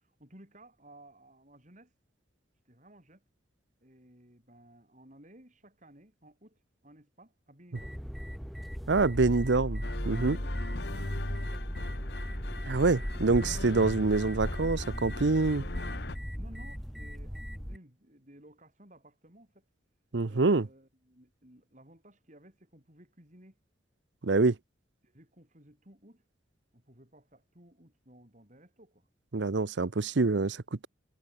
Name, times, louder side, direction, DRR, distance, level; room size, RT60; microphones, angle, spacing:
voice 1, 0.0-1.9 2.6-3.3 3.8-8.0 9.4-9.8 10.1-11.9 12.8-13.2 16.4-19.6 20.2-23.6 25.0-26.3 26.7-29.1, right 1 dB, 40° right, 8.0 m, -57 dB
sound 1, 7.7-17.8, equal, ahead, 3.4 m, -37 dB
voice 2, 8.9-9.8 10.1-10.4 12.7-15.6 20.1-20.7 24.2-24.6 29.3-30.9, right 3 dB, 65° right, 0.8 m, -26 dB
sound 2, 9.8-16.2, left 3 dB, 60° left, 1.0 m, -41 dB
head